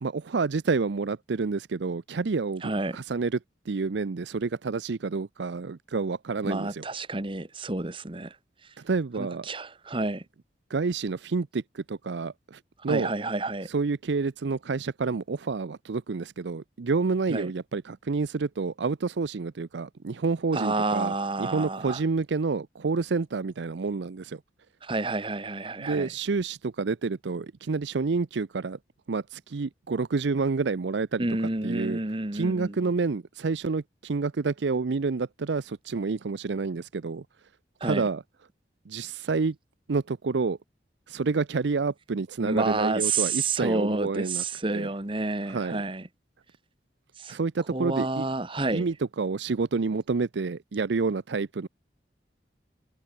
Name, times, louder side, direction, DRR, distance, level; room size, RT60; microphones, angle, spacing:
voice 1, 0.0-3.4 3.7-6.8 8.8-9.5 10.7-13.1 13.7-24.4 25.8-28.8 29.1-31.3 31.6-32.0 32.3-37.2 37.8-38.2 38.9-39.6 39.9-40.6 41.1-44.4 44.7-44.9 45.5-45.8 47.3-48.3 48.7-51.7, right 4 dB, 75° right, 0.5 m, -29 dB
voice 2, 2.6-3.0 6.4-8.3 9.2-10.2 12.9-13.7 17.3-17.5 20.5-22.0 24.8-26.1 31.2-32.7 37.8-38.0 42.4-46.0 47.2-47.4 47.7-48.8, right 2 dB, 30° right, 1.3 m, -29 dB
head